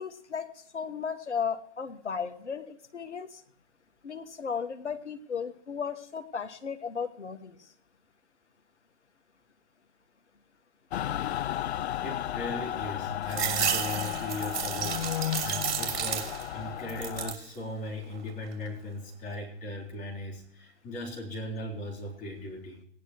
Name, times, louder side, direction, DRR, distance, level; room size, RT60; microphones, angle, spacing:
voice 1, 0.0-3.4 4.0-7.7, left 6 dB, 85° left, 8 dB, 1.4 m, -35 dB
Mechanical fan, 10.9-17.3, left 11 dB, 70° left, 0.6 m, -33 dB
voice 2, 12.0-15.1 15.4-22.8, left 1 dB, 25° left, -2 dB, 3.8 m, -38 dB
sound 1, 13.3-16.6 16.9-17.5 18.0-18.7, right 8 dB, 60° right, 3.0 m, -32 dB
18.0 x 11.0 x 3.0 m, 0.64 s
hypercardioid pair, 120°, 34 cm